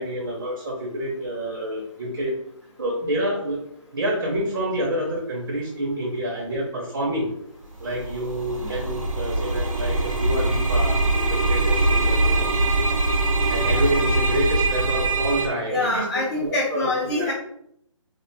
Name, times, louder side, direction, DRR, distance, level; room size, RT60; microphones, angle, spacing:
voice 1, 0.0-2.3 2.8-3.6 3.9-7.3 7.8-12.5 13.5-16.0 16.4-17.3, right 1 dB, 45° right, -2 dB, 0.6 m, -28 dB
sound 1, 7.7-15.5, right 2 dB, 85° right, 0.7 m, -22 dB
voice 2, 15.7-17.3, left 2 dB, 35° left, -6 dB, 0.6 m, -25 dB
2.5 x 2.2 x 2.5 m, 0.72 s
figure-of-eight pair, 155°, 17 cm